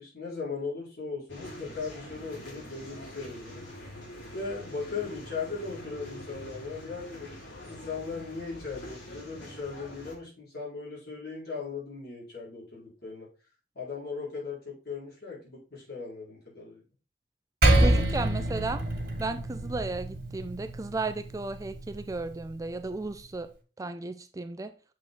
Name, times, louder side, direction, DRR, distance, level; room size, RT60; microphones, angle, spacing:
voice 1, 0.0-3.6 4.3-13.3 13.7-16.8, left 4 dB, 60° left, -5 dB, 4.1 m, -38 dB
sound 1, 1.3-10.1, left 1 dB, 85° left, 2.8 m, -45 dB
Percussion, 17.6-22.4, right 1 dB, 60° right, 2.1 m, -27 dB
voice 2, 17.8-18.8 19.2-23.5 23.8-24.7, right 3 dB, 20° right, 9 dB, 0.4 m, -34 dB
7.3 x 4.7 x 3.7 m, 0.35 s
head